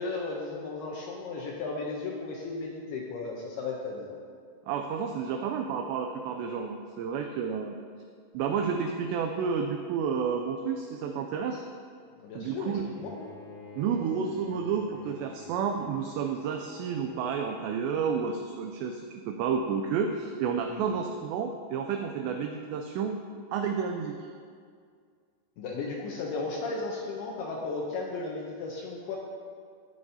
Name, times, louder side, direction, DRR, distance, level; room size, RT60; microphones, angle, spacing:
voice 1, 0.0-4.2 12.2-12.7 13.0-13.2 20.7-21.0 25.6-29.2, left 3 dB, 80° left, -2 dB, 2.4 m, -35 dB
voice 2, 4.7-7.8 8.3-11.6 12.3-12.8 13.8-23.2 23.5-24.3, right 6 dB, 90° right, 4 dB, 2.4 m, -31 dB
Bowed string instrument, 13.0-18.0, left 4 dB, 70° right, 0.7 m, -49 dB
17.5 x 7.2 x 2.8 m, 2.1 s
omnidirectional pair, 5.5 m